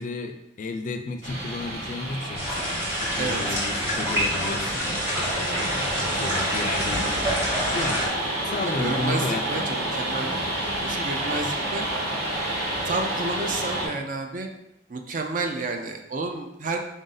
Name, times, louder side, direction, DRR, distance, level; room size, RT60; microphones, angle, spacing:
voice 1, 0.0-7.2 7.7-8.0 8.4-9.8, left 3 dB, 40° left, 6 dB, 0.3 m, -33 dB
sound 1, 1.2-13.9, right 1 dB, 60° right, 1.0 m, -29 dB
sound 2, 2.3-8.1, equal, 15° right, 1.0 m, -28 dB
voice 2, 3.2-3.6 8.6-10.4 10.8-11.9 12.9-14.5 14.9-16.8, right 3 dB, 45° right, 4 dB, 0.4 m, -30 dB
3.6 x 2.6 x 3.9 m, 0.83 s
head